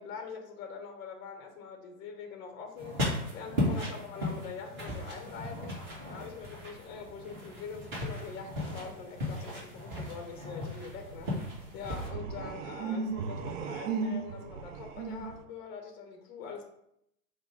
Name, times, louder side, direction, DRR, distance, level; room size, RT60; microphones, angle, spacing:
voice 1, 0.0-5.8 6.1-11.3 11.7-16.6, left 5 dB, 20° left, 4 dB, 0.7 m, -44 dB
sound 1, 2.8-12.1, left 1 dB, 25° right, 1.6 m, -36 dB
sound 2, 5.2-6.1 6.4-6.5 10.4-15.4, right 5 dB, 55° right, 0.5 m, -37 dB
5.1 x 2.5 x 3.8 m, 0.76 s
hypercardioid pair, 125°, 46 cm